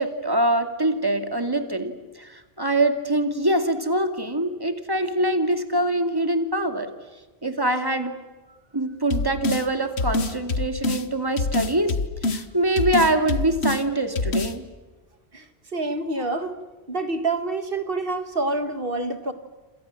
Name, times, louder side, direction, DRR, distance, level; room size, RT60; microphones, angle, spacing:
voice 1, 0.0-6.9 7.4-8.1 8.7-14.7, right 1 dB, 20° right, 7 dB, 2.5 m, -24 dB
sound 1, 9.1-9.6 10.0-11.0 11.4-12.4 12.8-13.8 14.2-14.5, left 3 dB, 80° left, 1.7 m, -25 dB
voice 2, 15.7-16.6 16.9-19.3, right 2 dB, 60° right, 10 dB, 2.2 m, -27 dB
27.5 x 27.0 x 7.6 m, 1.3 s
omnidirectional pair, 1.1 m